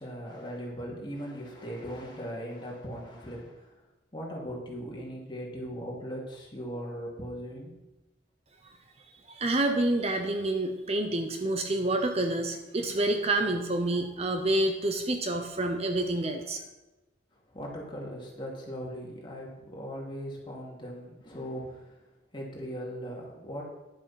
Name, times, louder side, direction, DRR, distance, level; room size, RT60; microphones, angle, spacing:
voice 1, 0.0-3.8 4.1-7.7 17.5-23.7, equal, 25° left, -2 dB, 2.6 m, -39 dB
voice 2, 9.3-16.6, right 2 dB, 35° right, 5 dB, 0.8 m, -28 dB
10.5 x 7.3 x 5.8 m, 1.1 s
head